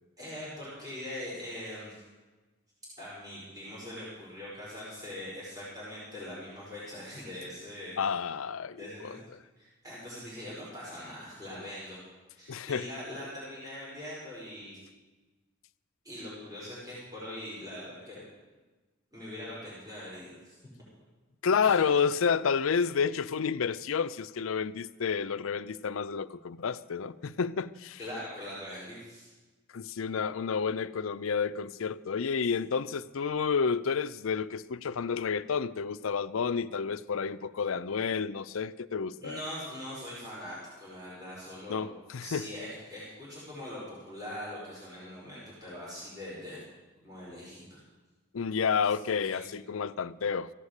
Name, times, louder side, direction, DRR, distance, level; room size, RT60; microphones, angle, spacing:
voice 1, 0.2-2.0 3.0-8.0 8.7-9.2 9.6-12.0 12.3-14.8 16.0-18.2 19.1-20.6 21.6-21.8 28.0-29.3 39.2-41.9 42.2-46.6 47.0-47.8 48.9-49.0 49.3-49.4, left 1 dB, 15° right, 5.1 m, -42 dB
voice 2, 8.0-9.2 12.5-12.9 21.4-28.0 29.7-39.4 41.7-42.5 48.3-50.5, left 6 dB, 75° left, 0.5 m, -30 dB
15.5 x 8.5 x 8.1 m
head